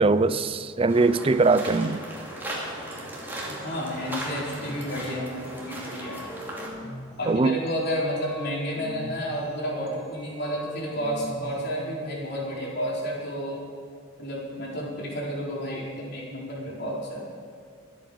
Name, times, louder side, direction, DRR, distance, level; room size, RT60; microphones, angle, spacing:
voice 1, 0.0-2.0 7.3-7.5, right 3 dB, 30° right, 0.4 m, -21 dB
sound 1, 0.9-6.7, right 1 dB, 10° right, 2.9 m, -37 dB
voice 2, 3.4-6.2 7.2-13.6 14.2-17.3, equal, 55° left, 4.3 m, -31 dB
sound 2, 4.6-4.9 5.5-7.1 7.7-9.3 9.9-11.5, left 1 dB, 20° left, 1.7 m, -41 dB
25.5 x 8.6 x 5.2 m
head